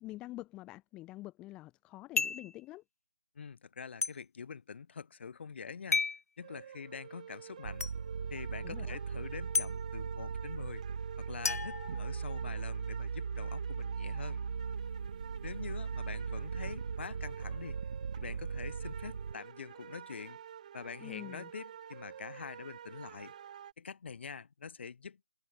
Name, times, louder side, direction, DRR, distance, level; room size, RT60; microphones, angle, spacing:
voice 1, 0.0-2.8 8.6-9.0 21.0-21.5, left 17 dB, 10° left, 2.4 m, -46 dB
sound 1, 2.2-2.5 4.0-4.1 5.9-6.2 7.8-7.9 9.5-9.7 11.4-12.5, left 4 dB, 55° left, 2.7 m, -32 dB
voice 2, 3.3-6.1 6.4-7.9 8.3-10.8 11.2-14.4 15.4-17.8 18.2-20.4 20.7-23.3 23.8-25.3, left 6 dB, 40° left, 4.8 m, -45 dB
sound 2, 6.4-23.7, right 9 dB, 25° right, 3.6 m, -50 dB
sound 3, 7.6-19.3, right 5 dB, 40° right, 2.9 m, -38 dB
hypercardioid pair, 175°, 10 cm